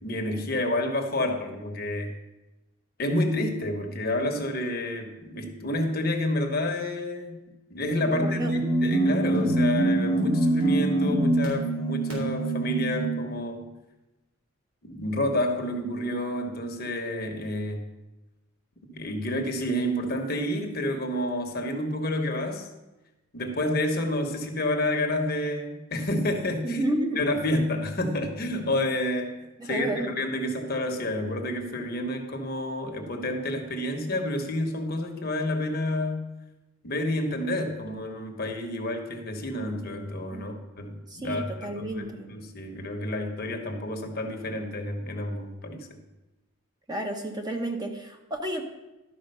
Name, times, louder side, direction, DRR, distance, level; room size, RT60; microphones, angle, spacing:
voice 1, 0.0-2.1 3.0-7.4 7.7-13.7 14.8-17.8 18.9-22.7 23.3-26.8 27.2-36.2 36.8-45.9, left 1 dB, 45° left, 4 dB, 1.0 m, -29 dB
sound 1, 8.0-13.2, right 2 dB, 80° right, 3.8 m, -24 dB
voice 2, 8.2-8.5 26.6-27.3 29.6-30.1 40.3-40.5 41.1-42.3 46.9-48.6, right 1 dB, 20° right, 2 dB, 0.8 m, -31 dB
12.0 x 5.0 x 5.4 m, 1.0 s
head